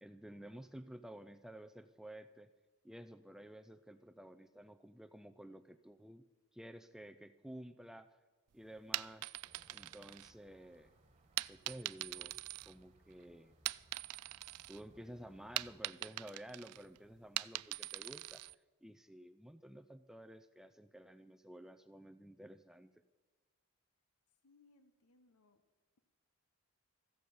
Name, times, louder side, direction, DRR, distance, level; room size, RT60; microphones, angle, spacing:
voice 1, 0.0-2.5 2.8-6.2 6.5-8.2 8.5-9.3 9.7-10.9 11.5-13.6 14.7-18.4 18.8-22.9, right 1 dB, ahead, 10 dB, 0.3 m, -53 dB
sound 1, 8.8-10.7 11.4-13.1 13.5-14.8 15.1-18.5, right 17 dB, 90° right, 0.3 m, -42 dB
sound 2, 9.4-15.8, right 1 dB, 25° right, 1.6 m, -68 dB
voice 2, 24.4-25.6, left 3 dB, 85° left, 9 dB, 1.1 m, -68 dB
14.5 x 9.3 x 7.8 m, 1.3 s
head